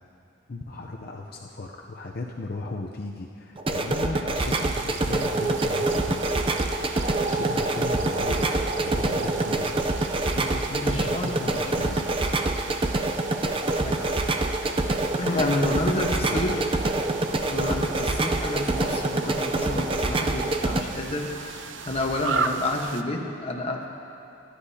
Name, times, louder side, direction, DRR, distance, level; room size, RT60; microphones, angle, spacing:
voice 1, 0.5-6.2 7.2-8.5 8.8-12.1 15.8-16.6, left 2 dB, 55° left, -1 dB, 0.7 m, -36 dB
sound 1, 3.6-20.8, right 2 dB, 30° right, 0.6 m, -26 dB
sound 2, 4.4-23.0, right 5 dB, 80° right, 0.6 m, -37 dB
voice 2, 10.8-11.4 11.8-11.9 13.6-14.6 15.2-16.6 17.4-23.9, left 2 dB, 35° left, 0 dB, 1.2 m, -30 dB
26.5 x 10.0 x 2.8 m, 2.8 s
head